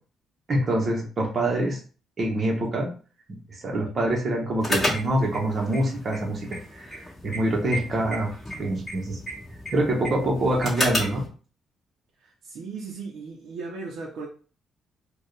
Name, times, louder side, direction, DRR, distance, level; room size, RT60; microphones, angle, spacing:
voice 1, 0.5-1.8 2.2-2.9 3.6-8.3 8.6-9.2 9.7-11.2, right 1 dB, 30° right, 0.9 m, -25 dB
sound 1, 4.6-11.3, left 1 dB, 15° left, 1.9 m, -32 dB
voice 2, 12.2-14.3, right 4 dB, 75° right, 0.7 m, -37 dB
4.4 x 2.4 x 3.2 m
cardioid pair, 150°, 0 cm